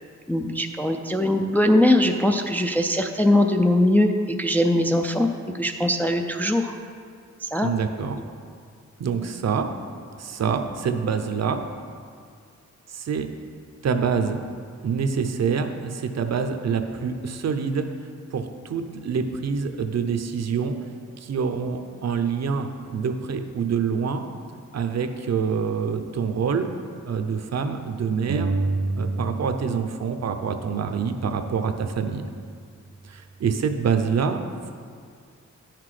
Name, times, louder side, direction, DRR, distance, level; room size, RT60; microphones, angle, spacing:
voice 1, 0.3-4.1 4.4-5.3 5.5-6.8 7.4-7.7, left 1 dB, 5° left, 4 dB, 0.3 m, -21 dB
voice 2, 7.6-8.2 9.0-9.7 10.2-11.6 12.9-13.3 13.8-14.4 14.8-17.9 18.3-20.7 21.2-24.2 24.7-26.7 27.1-28.5 29.0-32.2 33.0-34.4, right 6 dB, 60° right, 7 dB, 0.6 m, -26 dB
sound 1, 28.3-29.8 30.0-31.8, right 3 dB, 85° right, 1.0 m, -29 dB
10.5 x 5.9 x 4.9 m, 2.2 s
wide cardioid pair, 165°, 29 cm